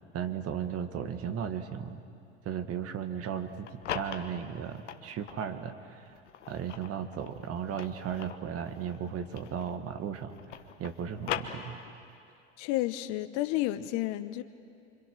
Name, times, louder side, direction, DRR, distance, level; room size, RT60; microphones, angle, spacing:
voice 1, 0.1-2.0 2.5-6.1 6.5-10.3 10.8-11.8, right 8 dB, 40° right, 9 dB, 1.8 m, -36 dB
sound 1, 3.4-5.6 6.1-9.9 10.2-12.1, left 9 dB, 80° left, 1.4 m, -40 dB
voice 2, 12.6-14.4, left 15 dB, 55° left, 11 dB, 1.0 m, -31 dB
26.0 x 25.5 x 6.1 m, 2.5 s
hypercardioid pair, 80°, 35 cm